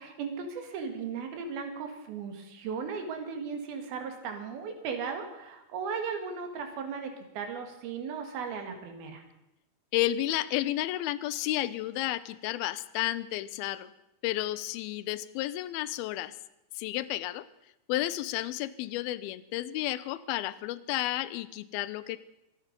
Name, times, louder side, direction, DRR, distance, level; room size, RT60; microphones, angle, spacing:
voice 1, 0.0-9.2, right 5 dB, 80° right, 5 dB, 3.7 m, -36 dB
voice 2, 9.9-13.9 14.2-16.4 16.8-17.5 17.9-22.2, left 15 dB, 85° left, 16 dB, 2.5 m, -32 dB
24.5 x 8.9 x 5.3 m, 0.88 s
omnidirectional pair, 4.2 m